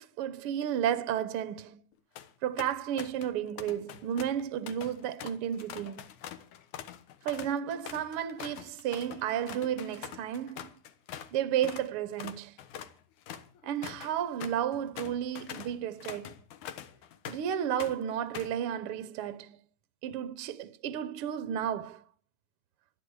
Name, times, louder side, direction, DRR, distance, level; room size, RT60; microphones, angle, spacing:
voice 1, 0.0-1.8 2.4-6.1 7.2-10.7 11.3-12.6 13.6-16.3 17.3-19.6 20.0-22.0, right 10 dB, 70° right, 1.4 m, -32 dB
sound 1, 1.9-2.3 2.6-3.3 3.6-11.3 11.6-11.9 12.2-17.5 17.8-18.6, left 10 dB, 70° left, 2.6 m, -44 dB
24.0 x 9.8 x 4.7 m
omnidirectional pair, 3.7 m